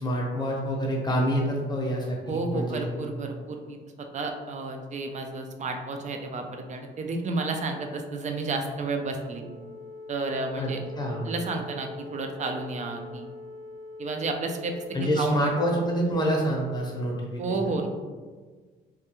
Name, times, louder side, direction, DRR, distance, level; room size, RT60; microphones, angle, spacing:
voice 1, 0.0-2.9 10.6-11.3 14.9-17.8, equal, 20° left, -2 dB, 0.7 m, -27 dB
voice 2, 2.3-9.5 10.1-10.8 11.2-13.3 14.0-14.7 15.0-15.4 17.4-17.9, right 3 dB, 35° right, 4 dB, 0.4 m, -31 dB
sound 1, 9.3-16.8, left 2 dB, 65° right, 0.9 m, -42 dB
2.3 x 2.2 x 2.9 m, 1.4 s
cardioid pair, 90°, 20 cm